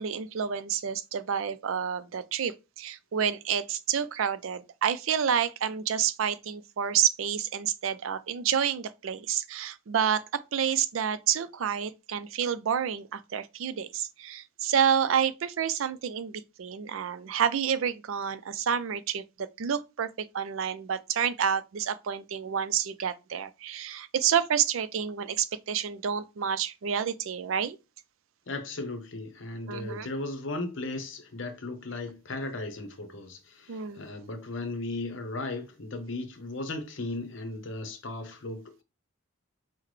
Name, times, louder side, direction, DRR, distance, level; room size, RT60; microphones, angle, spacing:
voice 1, 0.0-27.8 29.7-30.1 33.7-34.0, right 8 dB, 80° right, 0.4 m, -29 dB
voice 2, 28.5-38.8, left 2 dB, 65° left, 0.8 m, -36 dB
5.7 x 2.1 x 3.2 m
head